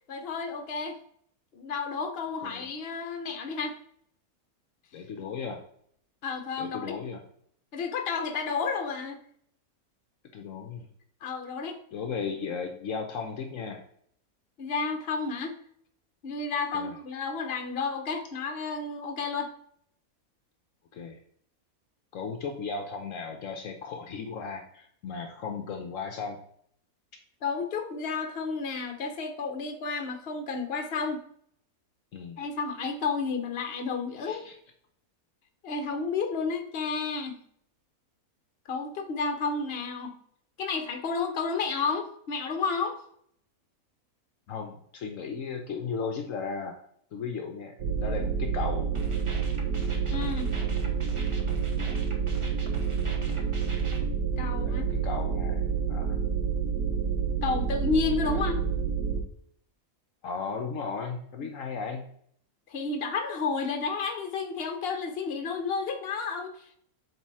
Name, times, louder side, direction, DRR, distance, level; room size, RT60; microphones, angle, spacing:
voice 1, 0.1-1.0 1.5-3.8 6.2-6.9 7.7-9.2 11.2-11.8 14.6-15.6 16.2-19.5 27.4-31.2 32.4-34.4 35.6-37.4 38.7-40.1 40.6-43.0 50.1-50.5 54.4-54.9 57.4-58.5 61.4-61.5 62.7-66.7, left 4 dB, 45° left, 6 dB, 1.1 m, -31 dB
voice 2, 4.9-5.6 6.6-7.2 10.3-10.9 11.9-13.8 16.7-17.0 20.9-21.2 22.1-26.4 32.1-32.4 34.2-34.5 44.5-46.8 47.1-48.9 51.8-52.0 54.6-56.2 58.2-58.4 60.2-62.1, left 5 dB, 65° left, 4 dB, 1.1 m, -36 dB
sound 1, 47.8-59.2, right 6 dB, 90° right, 1.4 m, -28 dB
sound 2, 48.9-54.0, right 2 dB, 25° right, 0.9 m, -43 dB
7.2 x 3.4 x 4.7 m, 0.65 s
omnidirectional pair, 1.5 m